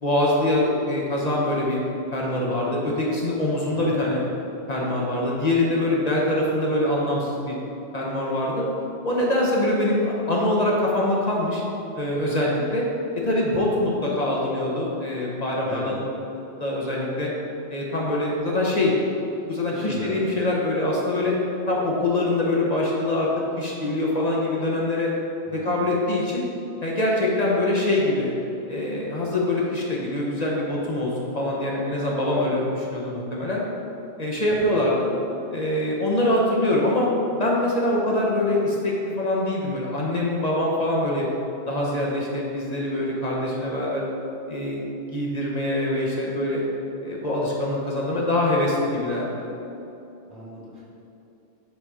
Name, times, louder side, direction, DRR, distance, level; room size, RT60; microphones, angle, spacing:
voice 1, 0.0-1.8 2.1-4.2 4.7-7.6 7.9-8.7 9.0-11.6 11.9-12.8 13.3-16.0 16.6-17.3 17.7-18.9 19.5-21.3 21.7-23.3 23.6-25.1 25.5-26.5 26.8-28.3 28.7-33.6 34.2-35.1 35.5-37.1 37.4-41.3 41.7-44.0 44.5-44.8 45.1-46.6 47.0-49.4, left 1 dB, 40° left, -4 dB, 0.9 m, -24 dB
voice 2, 3.7-4.1 15.6-16.0 19.6-20.3 25.4-25.8 34.5-34.7 50.3-50.8, right 1 dB, 75° right, -7 dB, 2.0 m, -37 dB
6.3 x 4.1 x 4.8 m, 2.9 s
omnidirectional pair, 1.1 m